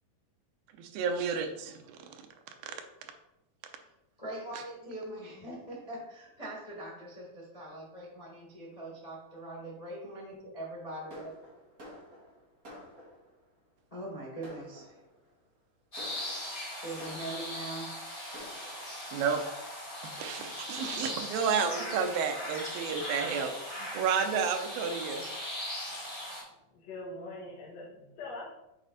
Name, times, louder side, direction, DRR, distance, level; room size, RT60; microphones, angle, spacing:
voice 1, 0.8-2.2 19.1-19.4 20.0-25.2, right 6 dB, 90° right, 5 dB, 2.5 m, -31 dB
voice 2, 4.2-11.3 13.9-15.0 16.8-17.9, right 1 dB, 80° left, -4 dB, 0.3 m, -42 dB
Fireworks, 11.1-13.4 14.0-14.1 14.4-15.3 16.0-17.7 18.3-19.2 19.9-20.0 20.4-20.5 20.8-21.2, left 1 dB, 30° right, 1.8 m, -50 dB
sound 1, 15.9-26.4, left 1 dB, 15° left, 1.9 m, -39 dB
voice 3, 25.9-26.4 26.7-28.4, left 2 dB, 60° left, -5 dB, 2.0 m, -44 dB
7.5 x 4.2 x 4.0 m, 0.90 s
omnidirectional pair, 4.1 m